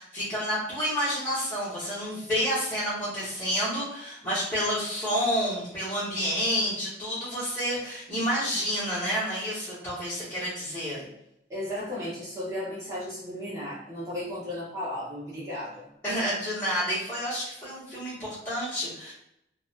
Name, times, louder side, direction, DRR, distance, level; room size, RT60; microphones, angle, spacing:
voice 1, 0.0-11.0 16.0-19.1, equal, 15° left, -15 dB, 1.2 m, -29 dB
voice 2, 11.5-15.9, left 1 dB, 15° right, -9 dB, 1.0 m, -35 dB
2.7 x 2.3 x 2.7 m, 0.81 s
head